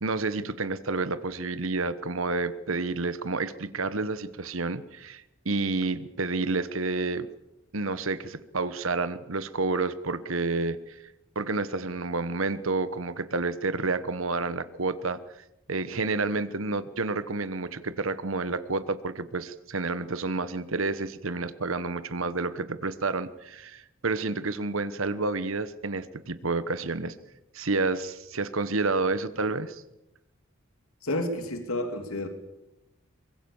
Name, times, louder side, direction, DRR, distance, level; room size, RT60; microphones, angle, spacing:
voice 1, 0.0-7.3 7.7-11.0 11.3-15.2 15.7-27.1 27.5-29.8, right 3 dB, 75° right, 13 dB, 1.2 m, -29 dB
voice 2, 31.0-32.3, left 1 dB, 90° left, 6 dB, 2.9 m, -30 dB
24.0 x 22.5 x 7.2 m, 0.91 s
head